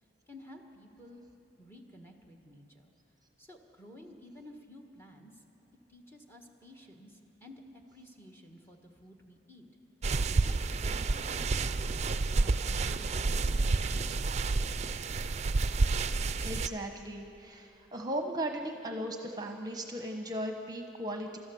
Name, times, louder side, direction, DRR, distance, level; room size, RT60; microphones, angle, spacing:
voice 1, 0.3-1.2 1.6-2.9 3.4-5.4 5.9-9.7 10.4-15.0, equal, 15° left, 3 dB, 1.6 m, -53 dB
sound 1, 10.0-16.7, right 3 dB, 40° right, 0.5 m, -29 dB
voice 2, 16.4-21.4, right 1 dB, 20° right, 4 dB, 1.1 m, -37 dB
28.5 x 13.0 x 7.1 m, 2.8 s
head